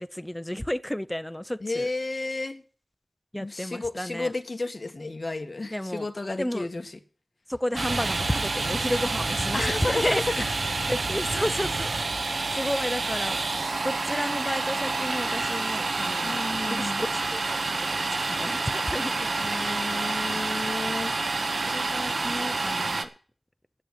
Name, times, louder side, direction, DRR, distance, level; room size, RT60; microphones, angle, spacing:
voice 1, 0.0-1.9 3.3-4.3 5.7-6.1 6.4-6.7 7.5-10.2 10.9-13.4 13.8-16.4 16.7-19.2 21.7-23.1, left 1 dB, 10° left, 0.7 m, -32 dB
voice 2, 1.6-2.6 3.4-6.9 9.5-10.5 12.4-12.5 16.2-17.0 19.2-21.1, left 2 dB, 50° left, 1.5 m, -32 dB
Domestic sounds home sounds, 7.8-23.1, right 3 dB, 80° right, 1.1 m, -28 dB
9.8 x 7.2 x 9.2 m
wide cardioid pair, 65°, 0 cm